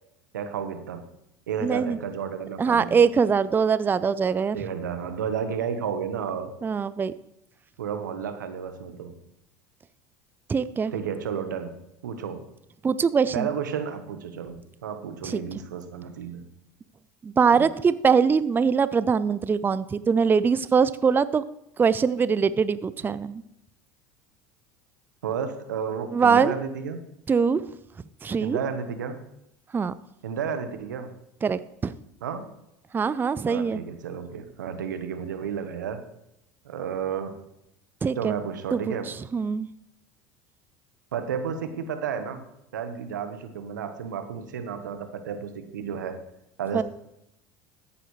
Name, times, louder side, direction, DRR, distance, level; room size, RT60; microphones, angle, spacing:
voice 1, 0.3-1.0 1.5-3.0 4.5-6.5 7.8-9.1 10.9-11.7 12.0-12.4 13.3-16.4 17.5-17.7 25.2-27.0 28.4-29.2 30.2-31.1 32.2-32.4 33.5-36.0 36.6-37.4 38.2-39.1 41.1-42.4 42.7-46.2 46.6-46.8, right 7 dB, 90° right, 9 dB, 1.1 m, -32 dB
voice 2, 1.6-2.0 2.6-4.6 6.6-7.1 10.5-10.9 12.8-13.5 15.2-15.4 17.2-21.4 21.8-23.4 26.1-26.5 27.3-27.6 28.2-28.6 29.7-29.9 31.4-31.9 32.9-33.8 38.0-38.3 38.7-38.8 39.1-39.7 46.7-46.8, right 6 dB, 20° right, 16 dB, 0.4 m, -22 dB
14.0 x 9.7 x 3.2 m, 0.81 s
hypercardioid pair, 85°, 10 cm